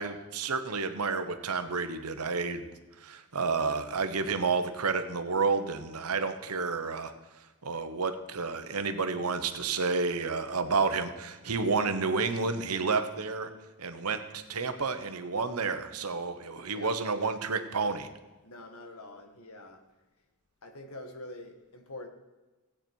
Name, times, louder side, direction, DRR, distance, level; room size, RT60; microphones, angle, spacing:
voice 1, 0.0-2.6 3.0-7.1 7.6-13.5 13.8-18.1, right 4 dB, 85° right, 9 dB, 1.1 m, -30 dB
voice 2, 18.4-19.8 20.6-22.1, left 2 dB, 70° left, 5 dB, 1.6 m, -45 dB
16.5 x 8.7 x 4.6 m, 1.1 s
head